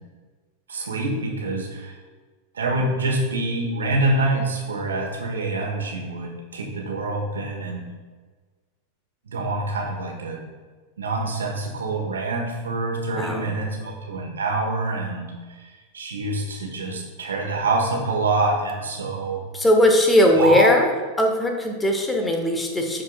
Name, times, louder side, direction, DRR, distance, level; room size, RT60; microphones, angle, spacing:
voice 1, 0.7-1.9 2.5-7.8 9.3-10.4 11.0-15.3 15.5-15.6 15.9-19.4 20.4-20.7, right 2 dB, 70° right, 0 dB, 1.4 m, -26 dB
voice 2, 13.1-13.5 19.5-20.9 21.2-23.0, left 1 dB, 10° left, 3 dB, 1.1 m, -19 dB
11.5 x 4.4 x 2.4 m, 1.4 s
figure-of-eight pair, 90°, 0 cm